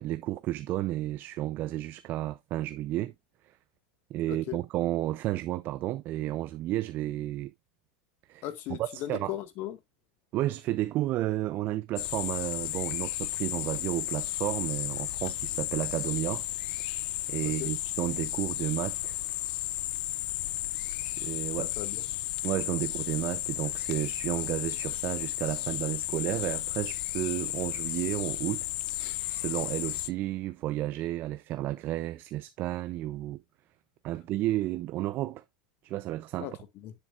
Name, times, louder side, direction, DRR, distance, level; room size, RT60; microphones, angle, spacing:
voice 1, 0.0-3.1 4.1-7.5 8.3-8.4 8.7-9.3 10.3-16.4 17.3-19.2 21.2-21.7 22.4-33.4 34.0-35.4 35.8-36.5, right 15 dB, 40° right, 0.5 m, -32 dB
voice 2, 8.4-9.8 17.6-17.7 21.6-22.1 36.4-36.9, left 13 dB, 45° left, 1.7 m, -37 dB
sound 1, 12.0-30.1, left 18 dB, 70° left, 0.4 m, -33 dB
7.6 x 7.4 x 2.4 m
supercardioid pair, 135°, 5 cm